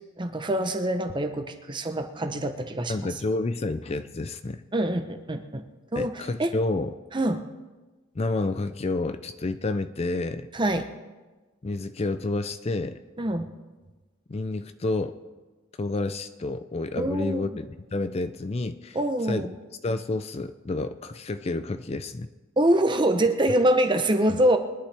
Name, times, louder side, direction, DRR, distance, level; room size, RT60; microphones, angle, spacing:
voice 1, 0.2-3.1 4.7-5.6 5.9-6.5 7.1-7.4 10.5-10.9 13.2-13.5 17.0-17.6 18.9-19.6 22.6-24.6, right 1 dB, 20° right, 7 dB, 0.8 m, -25 dB
voice 2, 2.9-4.6 6.0-6.9 8.2-10.5 11.6-13.0 14.3-15.2 15.8-19.0 19.3-19.5 19.8-22.3 24.3-24.4, left 2 dB, 30° left, 10 dB, 0.4 m, -29 dB
22.5 x 11.5 x 3.4 m, 1.2 s
head